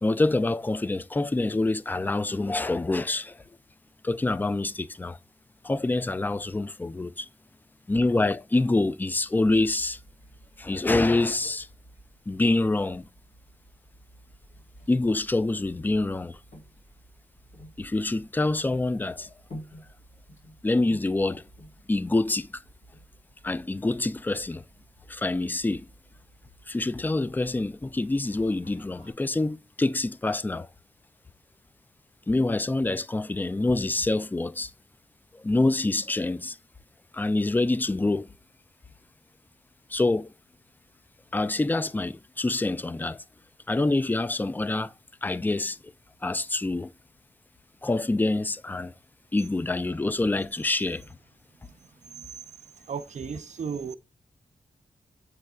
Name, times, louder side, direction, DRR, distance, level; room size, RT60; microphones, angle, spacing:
voice 1, 0.0-3.4 4.0-5.2 5.6-7.3 7.9-10.0 10.6-11.7 12.3-13.1 14.9-16.4 17.8-19.3 20.6-21.4 21.9-22.6 23.4-24.6 25.1-25.9 26.7-30.7 32.3-34.7 35.3-36.6 37.1-38.3 39.9-40.3 41.3-43.2 43.7-44.9 45.2-45.8 46.2-46.9 47.8-48.9 49.3-51.1, left 2 dB, 15° left, 0.3 m, -26 dB
sound 1, 9.4-29.1, equal, 55° left, 3.3 m, -52 dB
voice 2, 52.9-54.0, right 6 dB, 55° right, 0.5 m, -34 dB
7.4 x 6.3 x 2.3 m
wide cardioid pair, 85°, 15 cm